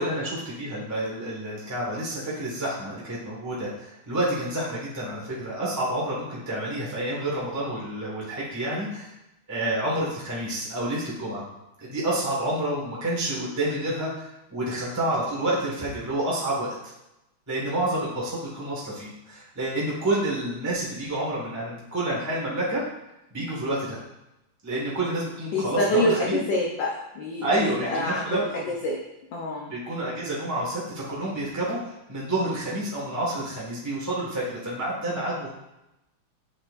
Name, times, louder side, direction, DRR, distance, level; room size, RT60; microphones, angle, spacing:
voice 1, 0.0-9.1 9.5-11.4 11.8-16.7 17.5-22.8 23.3-24.0 24.6-26.4 27.4-28.6 29.7-35.5, right 1 dB, 10° right, -6 dB, 1.2 m, -29 dB
voice 2, 25.5-29.0 29.3-29.7, left 1 dB, 65° left, -2 dB, 1.3 m, -27 dB
8.8 x 4.3 x 2.5 m, 0.91 s
omnidirectional pair, 2.4 m